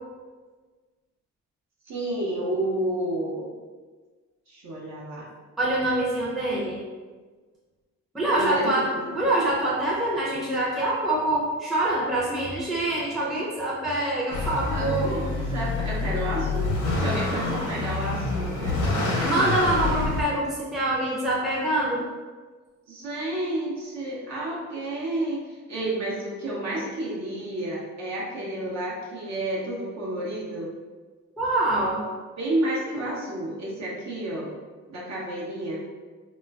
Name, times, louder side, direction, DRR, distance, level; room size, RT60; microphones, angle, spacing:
voice 1, 1.9-3.5 4.5-5.2 8.2-9.2 14.7-16.7 17.0-19.3 22.9-30.7 32.4-34.5 34.9-35.8, right 1 dB, 65° right, -5 dB, 0.8 m, -30 dB
voice 2, 5.6-6.8 8.1-15.2 19.2-22.0 31.4-32.0, right 1 dB, ahead, -6 dB, 0.5 m, -25 dB
Motor vehicle (road) / Accelerating revving vroom, 14.3-20.2, left 3 dB, 85° left, 0.7 m, -27 dB
3.0 x 2.3 x 2.3 m, 1.4 s
cardioid pair, 90°, 30 cm